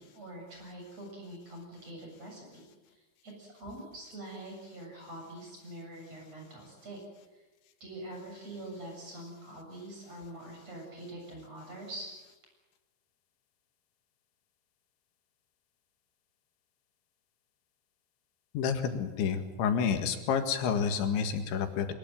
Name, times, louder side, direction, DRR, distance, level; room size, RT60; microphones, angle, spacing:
voice 1, 0.0-2.6 2.9-7.0 7.3-7.4 7.8-12.1, right 1 dB, 35° right, 0 dB, 8.2 m, -45 dB
voice 2, 18.5-21.9, left 7 dB, 90° left, 7 dB, 4.2 m, -29 dB
22.5 x 22.0 x 9.2 m, 1.2 s
omnidirectional pair, 5.2 m